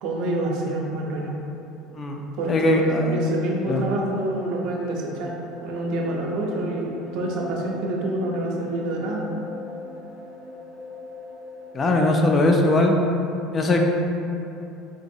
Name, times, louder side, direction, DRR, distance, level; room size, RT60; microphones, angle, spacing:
voice 1, 0.0-1.3 2.4-5.3 5.6-9.2, right 1 dB, 65° right, -1 dB, 0.6 m, -27 dB
voice 2, 2.5-3.2 3.7-3.8 11.7-12.9 13.5-13.8, left 2 dB, 25° left, 1 dB, 0.3 m, -20 dB
sound 1, 3.0-11.9, left 3 dB, 70° left, 1.0 m, -40 dB
3.8 x 3.0 x 2.7 m, 2.8 s
cardioid pair, 145°, 0 cm